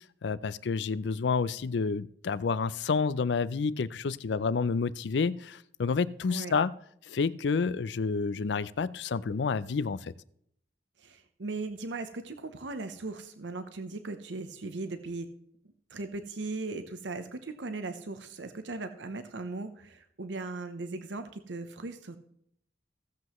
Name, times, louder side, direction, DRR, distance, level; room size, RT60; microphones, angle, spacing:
voice 1, 0.2-6.7 7.1-10.1, left 5 dB, 75° left, 18 dB, 0.4 m, -29 dB
voice 2, 11.0-15.3 15.9-22.2, right 3 dB, 85° right, 9 dB, 0.8 m, -38 dB
16.5 x 7.7 x 3.1 m, 0.71 s
head